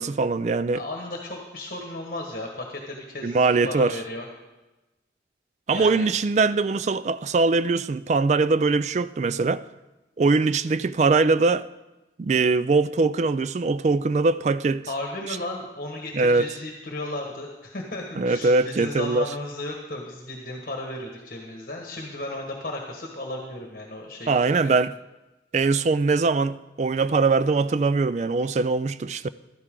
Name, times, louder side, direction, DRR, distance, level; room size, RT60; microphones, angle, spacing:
voice 1, 0.0-0.8 3.2-4.0 5.7-9.6 10.2-11.7 12.2-14.8 16.1-16.5 18.2-19.3 24.3-24.9 25.5-29.3, right 3 dB, 40° right, 0.3 m, -22 dB
voice 2, 0.7-4.3 5.7-6.1 14.9-24.3 24.6-24.7, left 2 dB, 50° left, 1.5 m, -34 dB
15.0 x 12.5 x 3.8 m
head